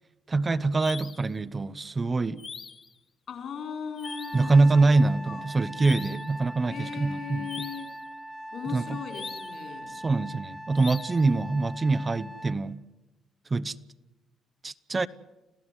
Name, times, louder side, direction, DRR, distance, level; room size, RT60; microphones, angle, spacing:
voice 1, 0.3-2.4 4.3-7.7 8.7-9.0 9.9-12.9 13.5-13.7 14.6-15.1, right 3 dB, 35° right, 0.9 m, -24 dB
sound 1, 0.8-1.3 2.4-2.9 4.0-4.5 5.8-6.3 7.4-8.0 9.1-9.7 10.7-11.3, left 5 dB, 50° left, 2.1 m, -42 dB
voice 2, 3.3-4.6 5.2-5.4 6.7-7.9 8.5-10.0, left 6 dB, 65° left, 5.4 m, -37 dB
Trumpet, 4.0-12.6, right 1 dB, 5° right, 1.5 m, -41 dB
28.0 x 15.5 x 9.6 m
supercardioid pair, 60°, 0 cm